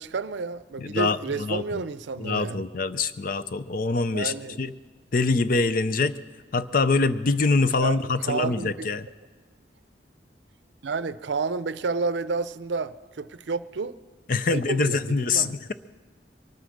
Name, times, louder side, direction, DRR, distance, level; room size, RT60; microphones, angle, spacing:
voice 1, 0.0-2.6 4.1-4.6 7.8-8.9 10.8-13.9 14.5-15.5, right 4 dB, 80° right, 15 dB, 0.5 m, -30 dB
voice 2, 0.8-1.8 2.2-4.7 5.1-6.1 6.5-9.1 14.3-15.7, left 3 dB, 50° left, 13 dB, 0.5 m, -24 dB
23.0 x 9.4 x 6.5 m, 1.5 s
head